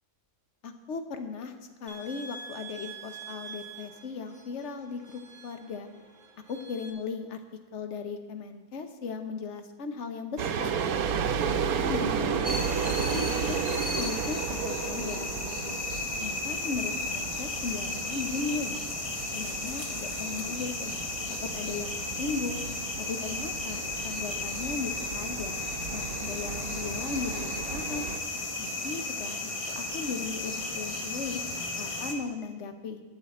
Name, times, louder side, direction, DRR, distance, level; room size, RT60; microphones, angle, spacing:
voice 1, 0.6-1.6 1.8-5.9 6.5-7.4 7.7-10.7 11.4-12.6 13.1-15.7 16.1-18.8 19.3-21.0 21.4-22.6 23.0-25.6 25.9-28.1 28.6-29.4 29.7-31.4 31.8-33.0, left 4 dB, 55° left, 7 dB, 1.1 m, -37 dB
sound 1, 1.9-6.9, right 5 dB, 30° right, 1.2 m, -46 dB
sound 2, 10.4-28.2, right 7 dB, 75° right, 1.1 m, -34 dB
sound 3, 12.4-32.1, left 2 dB, 25° left, 0.9 m, -34 dB
18.0 x 6.6 x 4.2 m, 1.2 s
omnidirectional pair, 1.6 m